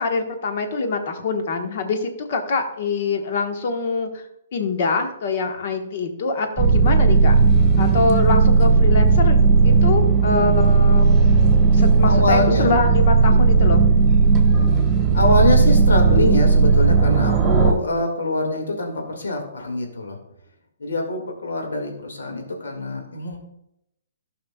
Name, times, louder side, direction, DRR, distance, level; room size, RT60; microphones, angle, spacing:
voice 1, 0.0-4.2 4.5-7.3 7.8-9.4 9.6-11.2 11.7-13.8, left 4 dB, 50° left, 5 dB, 1.2 m, -24 dB
sound 1, 6.6-17.7, right 4 dB, 15° right, 1.6 m, -15 dB
voice 2, 12.0-12.8 13.2-13.5 15.1-20.2 20.8-23.4, left 2 dB, 70° left, 2 dB, 1.9 m, -24 dB
15.5 x 5.7 x 2.3 m, 0.78 s
figure-of-eight pair, 125°, 0 cm